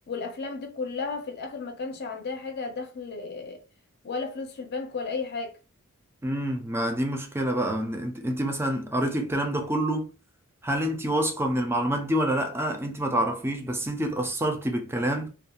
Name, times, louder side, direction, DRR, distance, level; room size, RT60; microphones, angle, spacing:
voice 1, 0.1-3.6 4.0-5.6, left 4 dB, 50° left, 0.5 m, -33 dB
voice 2, 6.2-10.1 10.6-15.3, right 1 dB, 10° right, 0.4 m, -27 dB
2.3 x 2.3 x 2.8 m
head